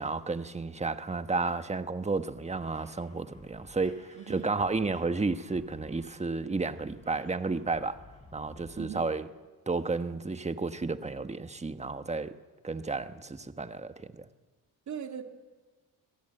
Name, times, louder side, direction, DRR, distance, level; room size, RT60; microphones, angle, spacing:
voice 1, 0.0-8.0 8.3-9.2 9.7-12.3 12.6-14.3, right 3 dB, 15° right, 1.3 m, -32 dB
sound 1, 2.5-8.9, left 2 dB, 15° left, 7.3 m, -56 dB
voice 2, 4.1-4.5 8.8-9.1 14.9-15.2, right 8 dB, 45° right, 2.3 m, -40 dB
25.5 x 17.0 x 7.8 m
cardioid pair, 90°, 39 cm